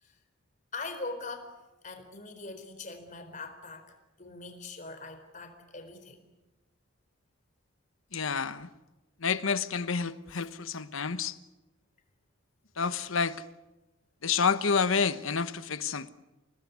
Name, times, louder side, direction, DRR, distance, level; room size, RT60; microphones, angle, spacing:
voice 1, 0.7-1.6 1.8-6.3, left 3 dB, 40° left, 4.2 m, -42 dB
voice 2, 8.1-8.7 9.2-11.4 12.8-13.4 14.2-16.1, left 5 dB, 80° left, 1.2 m, -29 dB
28.5 x 19.5 x 9.6 m
head